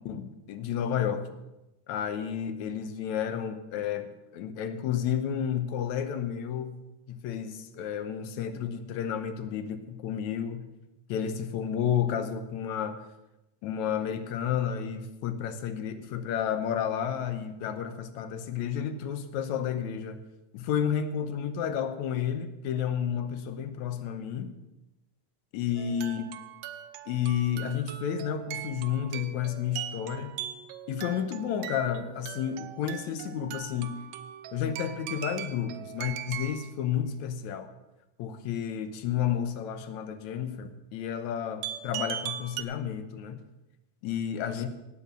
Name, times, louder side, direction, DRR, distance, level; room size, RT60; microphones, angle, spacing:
voice 1, 0.1-1.4 1.9-6.8 7.1-10.7 11.1-13.0 13.6-20.2 20.5-24.5 25.5-26.2 27.1-30.3 30.9-34.0 34.5-37.7 38.2-43.4 44.0-44.7, left 8 dB, 70° left, 10 dB, 2.1 m, -31 dB
sound 1, 25.8-36.7 41.6-42.6, right 11 dB, 85° right, 2.3 m, -40 dB
17.5 x 8.1 x 6.1 m, 0.96 s
omnidirectional pair, 3.7 m